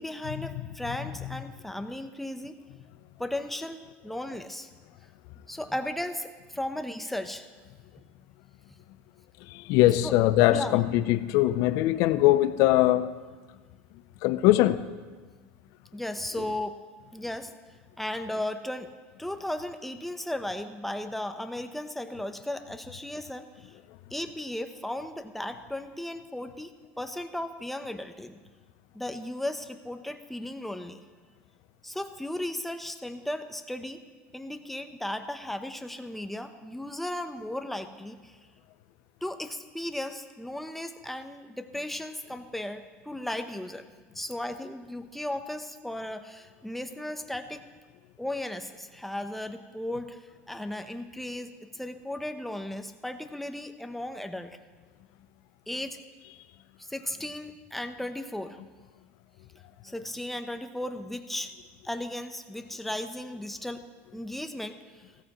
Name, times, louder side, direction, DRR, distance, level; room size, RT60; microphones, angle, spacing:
voice 1, 0.0-2.5 3.2-4.7 5.5-7.5 10.0-10.1 10.5-10.8 15.9-16.8 17.1-17.5 18.0-18.9 19.2-23.8 24.1-26.7 27.0-28.4 28.9-31.0 31.8-34.0 34.3-38.4 39.2-43.9 44.1-47.6 48.2-54.6 55.7-56.0 56.8-58.6 59.8-61.5 61.8-63.9 64.1-64.8, left 1 dB, 5° left, 0.8 m, -35 dB
voice 2, 9.5-13.2 14.2-14.9, left 15 dB, 65° left, 0.5 m, -22 dB
16.0 x 14.0 x 3.0 m
supercardioid pair, 105°, 6 cm